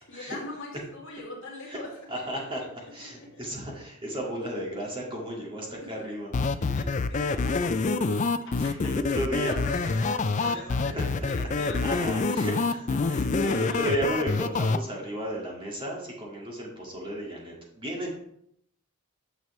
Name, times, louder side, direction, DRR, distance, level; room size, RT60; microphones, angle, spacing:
voice 1, 0.0-3.4 5.8-6.0 6.6-7.8 8.4-12.5 13.4-14.0, left 2 dB, 60° left, -2 dB, 2.5 m, -42 dB
voice 2, 2.1-2.6 2.9-6.3 7.9-8.2 8.5-9.5 10.4-10.6 11.2-11.5 11.8-18.1, right 1 dB, 25° right, -2 dB, 2.0 m, -34 dB
sound 1, 6.3-14.8, left 3 dB, 35° left, 0.4 m, -26 dB
9.4 x 6.0 x 3.2 m, 0.70 s
head